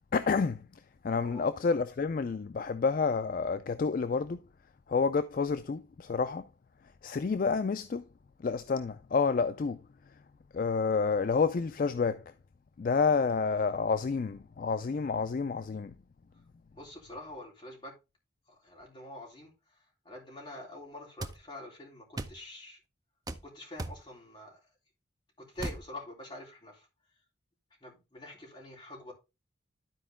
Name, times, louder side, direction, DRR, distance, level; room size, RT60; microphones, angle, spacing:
voice 1, 0.1-4.4 4.9-6.5 7.0-8.0 8.4-9.8 10.5-12.2 12.8-16.0, left 5 dB, 45° left, 0.3 m, -29 dB
voice 2, 16.7-17.9 18.5-22.8 23.4-24.6 25.4-26.9 27.8-29.1, left 1 dB, 25° left, 3.3 m, -46 dB
sound 1, 21.2-21.4 22.2-22.4 23.3-23.4 23.8-24.0 25.6-25.8, right 2 dB, 20° right, 0.5 m, -37 dB
12.0 x 4.5 x 3.6 m
head